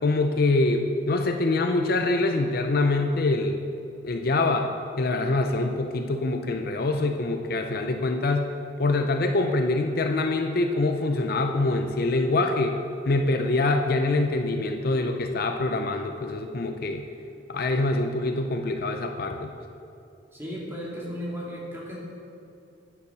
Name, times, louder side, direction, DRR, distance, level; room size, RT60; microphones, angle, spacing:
voice 1, 0.0-3.6 4.0-4.7 5.0-8.5 8.8-12.8 13.1-17.0 17.5-19.5, left 2 dB, 50° left, 5 dB, 0.5 m, -24 dB
voice 2, 20.3-22.0, equal, 10° right, -5 dB, 2.2 m, -35 dB
9.6 x 7.2 x 6.8 m, 2.6 s
head